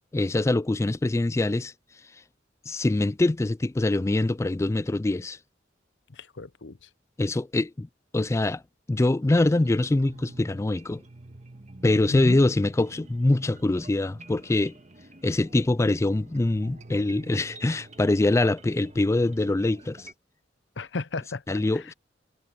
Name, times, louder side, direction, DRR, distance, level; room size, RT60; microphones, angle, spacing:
voice 1, 0.1-1.7 2.7-5.4 7.2-7.9 8.1-8.6 8.9-11.0 11.8-14.8 15.2-20.1 21.5-21.9, left 2 dB, 15° left, 0.3 m, -24 dB
voice 2, 6.1-6.9 12.1-12.4 20.8-21.9, left 3 dB, 75° left, 0.8 m, -34 dB
sound 1, 9.2-20.1, right 2 dB, 40° right, 1.7 m, -48 dB
head